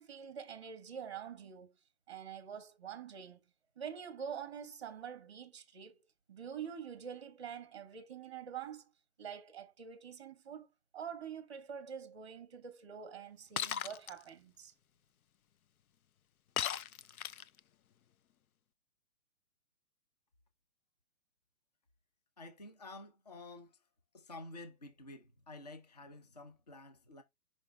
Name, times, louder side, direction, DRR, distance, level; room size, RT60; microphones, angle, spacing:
voice 1, 0.0-1.7 2.1-3.4 3.8-6.0 6.3-8.9 9.2-10.7 10.9-14.7, right 7 dB, 20° right, 0.8 m, -46 dB
Shatter, 13.6-14.1 16.6-17.6, left 9 dB, 70° left, 0.6 m, -36 dB
voice 2, 22.4-23.8 24.1-27.2, left 2 dB, 30° left, 0.6 m, -50 dB
6.4 x 5.0 x 3.3 m
hypercardioid pair, 180°, 44 cm